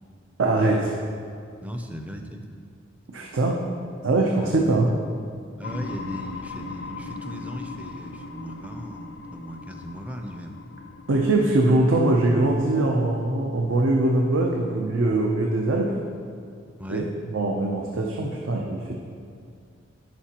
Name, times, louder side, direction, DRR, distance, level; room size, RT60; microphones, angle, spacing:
voice 1, 0.4-0.9 3.1-3.6 4.0-4.9 11.1-16.0 16.9-19.0, right 2 dB, 80° right, 0 dB, 0.6 m, -22 dB
voice 2, 1.6-2.4 4.4-4.5 5.6-10.7 16.8-17.1, equal, 5° right, 4 dB, 0.4 m, -37 dB
sound 1, 5.6-15.2, left 3 dB, 60° left, 0.4 m, -40 dB
10.5 x 5.0 x 2.9 m, 2.2 s
head